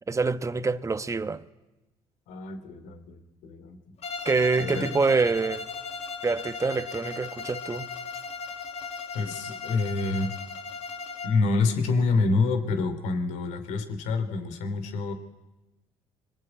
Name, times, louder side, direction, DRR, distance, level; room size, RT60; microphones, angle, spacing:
voice 1, 0.1-1.4 4.2-5.7 6.2-7.9, right 4 dB, 25° right, 1.2 m, -26 dB
voice 2, 2.3-3.8 4.6-4.9 9.1-10.3 11.2-15.1, left 3 dB, 85° left, 3.1 m, -27 dB
Bowed string instrument, 4.0-11.5, left 5 dB, 60° left, 1.8 m, -37 dB
26.0 x 23.5 x 8.9 m
supercardioid pair, 75°, 12 cm